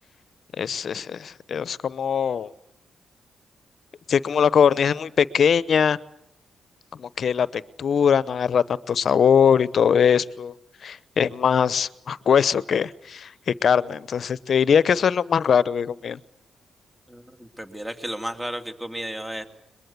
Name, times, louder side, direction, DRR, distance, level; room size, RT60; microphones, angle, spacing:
voice 1, 0.6-2.5 4.1-6.0 7.0-10.5 10.8-16.2, left 7 dB, 60° left, 18 dB, 0.8 m, -21 dB
voice 2, 17.1-19.5, equal, 10° right, 7 dB, 2.3 m, -33 dB
22.5 x 21.5 x 8.3 m, 0.79 s
supercardioid pair, 55°, 0 cm